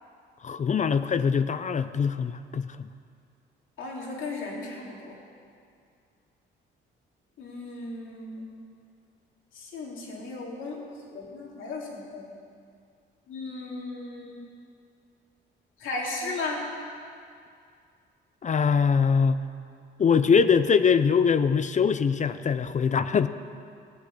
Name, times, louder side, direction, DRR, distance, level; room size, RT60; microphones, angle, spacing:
voice 1, 0.4-2.9 18.4-19.4 20.0-23.3, left 6 dB, 35° left, 12 dB, 0.6 m, -23 dB
voice 2, 3.8-5.2 7.4-8.5 9.5-10.8 11.1-12.3 13.3-14.4 15.8-16.6, left 3 dB, 80° left, -2 dB, 3.0 m, -36 dB
16.0 x 8.1 x 8.4 m, 2.3 s
cardioid pair, 90°, 20 cm